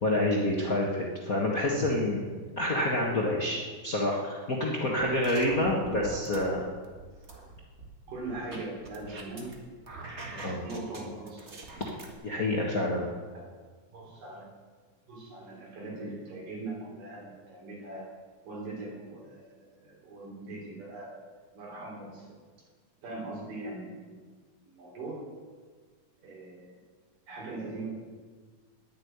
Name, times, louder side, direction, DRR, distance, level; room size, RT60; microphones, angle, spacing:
voice 1, 0.0-2.2 2.6-6.6 10.4-10.6 11.8-11.9 12.2-13.1, left 1 dB, 40° left, -2 dB, 1.2 m, -28 dB
voice 2, 4.9-5.3 5.7-6.0 8.1-9.6 10.3-11.5 12.3-12.7 13.3-13.5 13.9-14.5 15.1-18.1 18.5-21.2 21.5-22.4 23.0-24.2 24.7-25.3 26.2-26.7 27.3-27.9, right 2 dB, 80° right, -2 dB, 5.1 m, -41 dB
sound 1, 5.0-6.4 6.8-9.5 9.8-12.1, right 3 dB, 30° right, 1.3 m, -44 dB
10.5 x 10.5 x 9.4 m, 1.5 s
omnidirectional pair, 3.7 m